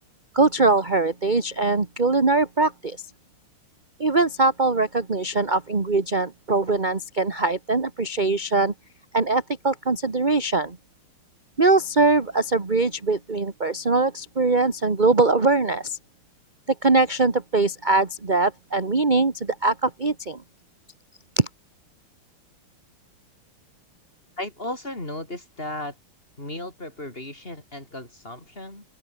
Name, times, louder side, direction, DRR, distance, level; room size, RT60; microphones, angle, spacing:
voice 1, 0.3-3.0 4.0-8.7 9.1-10.8 11.6-16.0 16.7-20.4 21.4-21.5, right 3 dB, 20° right, 1.8 m, -22 dB
voice 2, 24.4-26.0 26.4-28.8, left 1 dB, 25° left, 5.7 m, -35 dB
open air
omnidirectional pair, 2.3 m